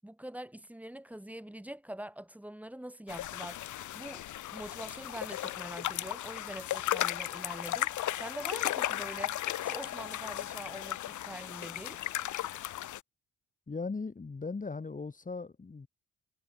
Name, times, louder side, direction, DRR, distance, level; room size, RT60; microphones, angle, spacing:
voice 1, 0.0-3.6 3.9-12.0, right 1 dB, 5° right, 7.5 m, -44 dB
sound 1, 3.1-13.0, left 13 dB, 75° left, 2.1 m, -36 dB
Wind instrument woodwind instrument, 6.7-11.3, left 9 dB, 60° left, 6.0 m, -50 dB
voice 2, 13.7-15.9, left 4 dB, 25° left, 4.4 m, -38 dB
cardioid pair, 90°, 30 cm